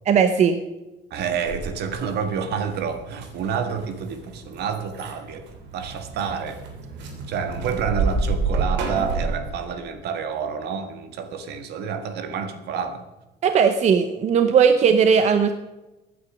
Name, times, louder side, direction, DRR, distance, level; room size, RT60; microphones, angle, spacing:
voice 1, 0.1-0.6 13.4-15.5, right 6 dB, 40° right, 9 dB, 0.8 m, -17 dB
voice 2, 1.1-6.6 7.3-13.1, right 6 dB, 65° right, 9 dB, 1.8 m, -29 dB
sound 1, 1.2-9.4, right 4 dB, 85° right, 3.2 m, -30 dB
15.5 x 9.7 x 6.2 m, 1.0 s
cardioid pair, 175°, 18 cm